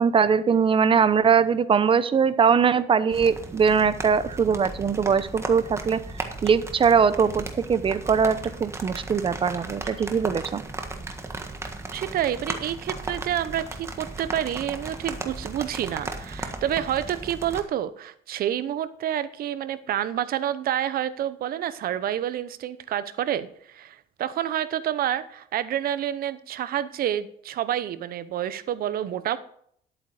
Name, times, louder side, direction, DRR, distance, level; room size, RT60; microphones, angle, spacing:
voice 1, 0.0-6.0 6.4-10.6, right 6 dB, 30° right, 14 dB, 0.7 m, -21 dB
sound 1, 3.1-17.6, right 2 dB, 15° right, 1.5 m, -36 dB
voice 2, 11.9-29.4, right 11 dB, 60° right, 14 dB, 0.9 m, -28 dB
11.0 x 8.6 x 4.9 m, 0.64 s
cardioid pair, 110°, 17 cm